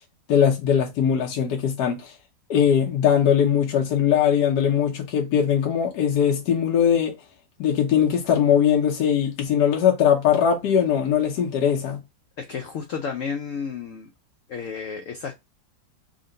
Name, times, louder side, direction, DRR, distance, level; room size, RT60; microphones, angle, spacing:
voice 1, 0.3-2.1 2.5-7.1 7.6-12.0, left 8 dB, 70° left, 1.2 m, -20 dB
voice 2, 12.4-14.1 14.5-15.3, left 6 dB, 90° left, 0.6 m, -32 dB
3.8 x 2.1 x 3.7 m
omnidirectional pair, 2.0 m